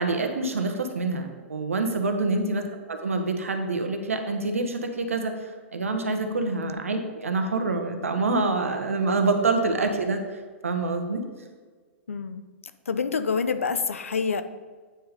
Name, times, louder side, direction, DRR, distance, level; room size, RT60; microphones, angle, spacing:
voice 1, 0.0-2.6 2.9-5.4 5.7-10.2 10.6-11.2, right 3 dB, 90° right, 6 dB, 1.1 m, -26 dB
voice 2, 2.3-2.7 6.6-6.8 12.1-12.4 12.9-14.4, left 5 dB, 90° left, 11 dB, 0.6 m, -27 dB
8.9 x 4.9 x 5.0 m, 1.5 s
hypercardioid pair, 115°, 7 cm